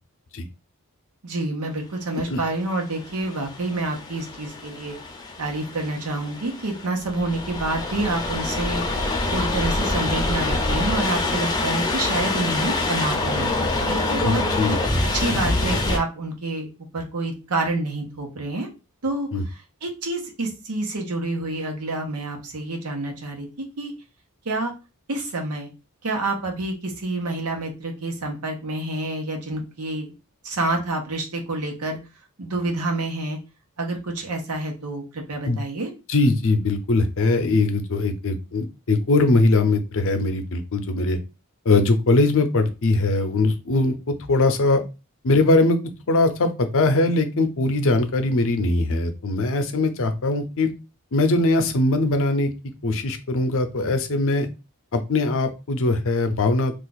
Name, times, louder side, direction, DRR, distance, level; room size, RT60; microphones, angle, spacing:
voice 1, 1.2-5.0 5.4-8.8 9.3-14.4 14.8-18.7 19.0-19.3 19.8-23.5 23.8-23.9 24.4-24.7 25.1-25.7 26.0-30.1 30.4-32.0 32.4-33.4 33.8-35.9, right 2 dB, 90° right, 2 dB, 0.9 m, -28 dB
sound 1, 2.4-16.0, left 2 dB, 20° left, 0.5 m, -26 dB
voice 2, 14.2-14.8 19.3-19.4 35.4-35.6 36.1-41.2 41.7-44.8 45.2-45.8 46.1-50.7 51.1-52.5 52.8-54.5 54.9-56.7, left 2 dB, 65° left, 8 dB, 0.6 m, -21 dB
2.5 x 2.4 x 4.0 m, 0.29 s
head